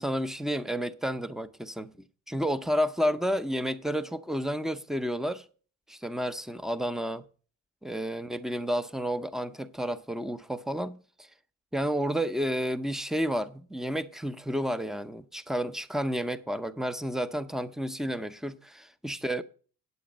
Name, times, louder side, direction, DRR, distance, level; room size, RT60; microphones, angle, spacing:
voice 1, 0.0-1.9 2.3-5.4 5.9-7.2 7.8-11.3 11.7-19.4, equal, ahead, 0.7 m, -31 dB
8.4 x 8.3 x 5.1 m
hypercardioid pair, 55°, 44 cm